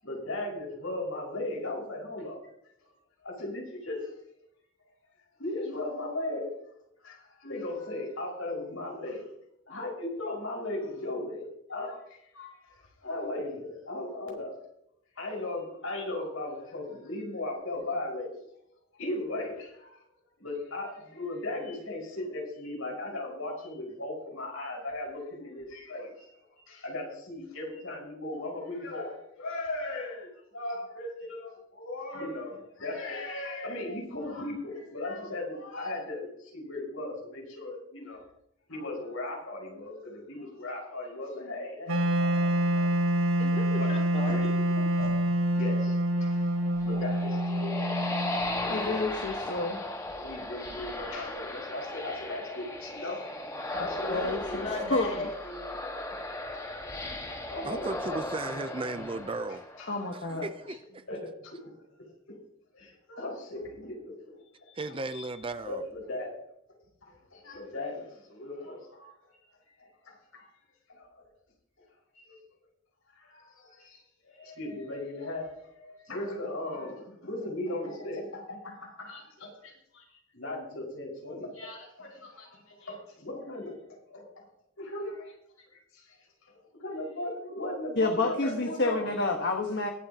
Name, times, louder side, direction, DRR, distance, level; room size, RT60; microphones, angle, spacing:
voice 1, 0.0-2.4 3.2-4.1 5.4-6.6 7.0-9.3 9.7-14.6 15.2-18.4 19.0-20.0 20.4-26.3 26.7-38.2 38.7-42.9 43.8-44.5 44.7-45.2 45.5-49.5 50.0-53.2 53.7-54.9 56.5-58.2 58.5-58.6 58.9-59.0 59.5-60.7 61.1-61.8 62.3-62.4 62.7-64.2 64.6-64.8 65.1-65.3 65.7-66.4 66.7-69.5 69.8-70.5 70.9-71.3 71.8-71.9 72.1-72.4 73.1-84.5 84.8-85.4 85.7-86.2 86.4-89.1, left 2 dB, 85° left, 5.3 m, -38 dB
Wind instrument woodwind instrument, 41.9-48.8, right 1 dB, 80° right, 1.2 m, -27 dB
voice 2, 43.4-44.7 54.5-56.0, left 2 dB, 35° left, 3.7 m, -38 dB
sound 1, 46.6-60.1, left 1 dB, 15° left, 1.5 m, -37 dB
voice 3, 48.7-49.8 54.1-54.4 54.9-55.3 59.9-60.4 88.0-89.9, left 2 dB, 55° left, 1.4 m, -29 dB
voice 4, 57.6-59.6 60.1-61.0 64.8-65.8, right 2 dB, 25° right, 0.5 m, -36 dB
22.5 x 8.6 x 2.9 m
head